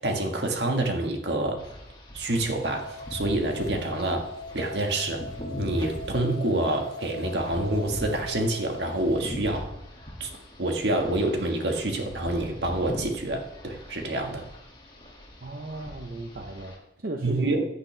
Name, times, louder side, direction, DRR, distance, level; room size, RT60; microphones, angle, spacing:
voice 1, 0.0-1.6 2.1-5.2 5.6-9.7 10.2-10.3 10.6-14.5 17.2-17.7, right 1 dB, 70° right, 2 dB, 1.7 m, -27 dB
sound 1, 1.6-16.8, equal, 25° left, 2.2 m, -41 dB
sound 2, 2.7-9.2, left 1 dB, 65° left, 0.8 m, -41 dB
voice 2, 15.4-17.6, right 2 dB, 55° right, 3 dB, 0.9 m, -37 dB
15.0 x 9.7 x 3.4 m, 0.88 s
head